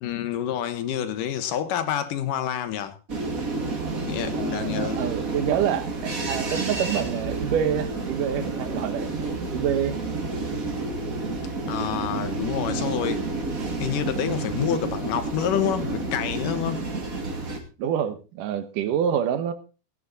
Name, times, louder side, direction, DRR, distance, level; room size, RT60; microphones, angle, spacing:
voice 1, 0.0-3.0 4.0-5.0 11.7-13.3 13.8-16.9, left 10 dB, 75° left, 2.7 m, -28 dB
sound 1, 3.1-17.6, right 3 dB, 30° right, 2.3 m, -30 dB
voice 2, 4.3-9.1 9.5-10.0 17.8-19.5, right 9 dB, 75° right, 2.6 m, -27 dB
16.5 x 10.5 x 4.0 m
omnidirectional pair, 3.9 m